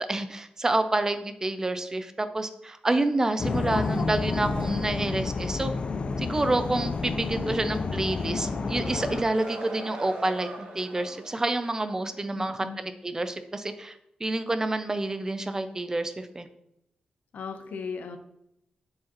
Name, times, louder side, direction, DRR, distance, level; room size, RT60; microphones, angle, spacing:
voice 1, 0.1-5.7 6.2-13.9 14.2-16.5, right 2 dB, 20° right, 10 dB, 0.4 m, -28 dB
sound 1, 3.4-9.2, left 4 dB, 40° left, 0.3 m, -29 dB
sound 2, 7.8-12.3, right 2 dB, 85° right, 1.4 m, -42 dB
voice 2, 12.3-12.8 17.3-18.2, left 5 dB, 75° left, 8 dB, 0.7 m, -37 dB
7.3 x 4.7 x 2.9 m, 0.80 s
wide cardioid pair, 130°, 3 cm